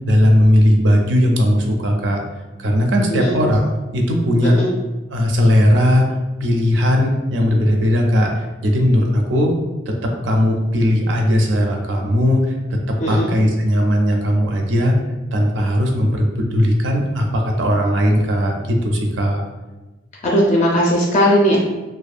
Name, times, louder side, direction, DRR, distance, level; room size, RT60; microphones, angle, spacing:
voice 1, 0.1-2.2 2.6-4.6 5.1-6.0 6.4-9.5 9.9-14.9 15.3-19.4, equal, 80° right, 2 dB, 0.4 m, -17 dB
voice 2, 20.2-21.6, equal, 40° left, -3 dB, 0.4 m, -17 dB
2.5 x 2.2 x 2.4 m, 1.1 s
head